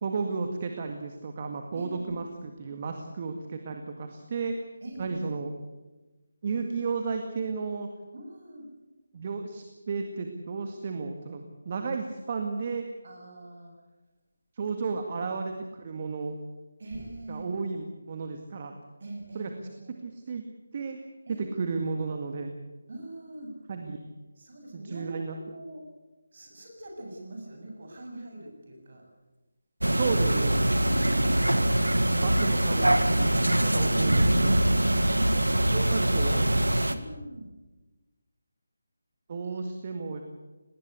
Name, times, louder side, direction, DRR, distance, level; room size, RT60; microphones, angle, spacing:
voice 1, 0.0-4.6 5.0-5.5 6.4-7.9 9.1-12.8 14.5-16.3 17.3-18.7 19.3-19.5 20.0-20.5 20.7-21.0 21.4-22.5 23.7-24.0 24.7-25.4 30.0-30.6 32.2-34.6 35.7-36.4 39.3-40.2, right 4 dB, 35° right, 5 dB, 2.0 m, -33 dB
voice 2, 1.7-2.2 4.8-5.3 8.1-8.7 13.0-13.7 15.2-15.3 16.8-17.5 19.0-20.0 21.3-21.5 22.9-23.5 24.4-25.8 26.3-29.0 36.0-37.5 39.5-39.6, right 1 dB, 50° right, 2 dB, 7.8 m, -43 dB
sound 1, 29.8-36.9, right 1 dB, 85° right, 1.8 m, -23 dB
19.5 x 19.5 x 8.4 m, 1.1 s
figure-of-eight pair, 160°, 0 cm